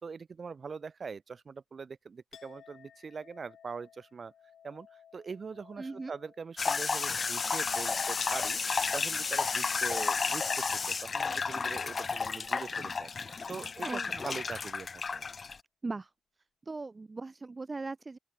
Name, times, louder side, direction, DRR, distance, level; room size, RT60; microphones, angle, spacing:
voice 1, 0.0-4.3 4.6-13.1 13.5-15.2, right 5 dB, 40° right, 4.0 m, -43 dB
Chink clink, 2.3-10.0 10.3-11.0, left 8 dB, 85° left, 7.1 m, -60 dB
voice 2, 5.8-6.1 13.8-14.2 15.8-16.1 16.7-18.2, right 3 dB, 25° right, 3.0 m, -39 dB
sound 1, 6.6-15.6, left 5 dB, 35° left, 0.5 m, -32 dB
open air
wide cardioid pair, 170°, 0 cm